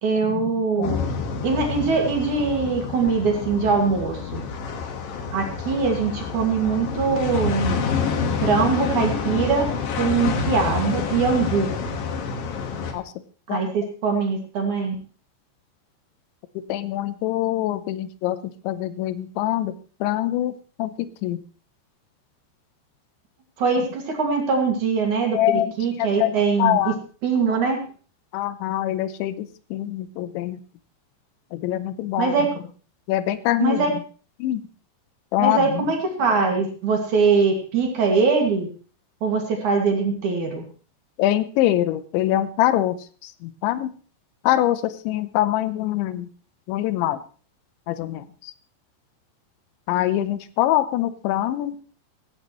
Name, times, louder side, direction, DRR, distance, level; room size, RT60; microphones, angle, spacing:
voice 1, 0.0-1.0 1.4-4.4 5.3-7.8 8.4-9.7 10.0-11.7 13.5-15.0 23.6-26.9 27.2-27.8 32.2-32.5 33.6-33.9 35.4-38.7 39.2-40.6, right 5 dB, 50° right, 2 dB, 3.1 m, -22 dB
sound 1, 0.8-12.9, left 5 dB, 60° left, 3.0 m, -28 dB
voice 2, 16.7-18.4 18.6-19.7 20.0-20.5 20.8-21.4 25.3-25.7 26.0-27.0 28.3-30.6 31.5-32.4 33.1-33.8 34.4-34.6 35.3-35.9 41.2-43.9 44.4-46.3 46.7-47.2 47.9-48.5 49.9-51.8, left 13 dB, 90° left, 13 dB, 3.2 m, -24 dB
16.5 x 16.0 x 3.1 m, 0.39 s
omnidirectional pair, 5.1 m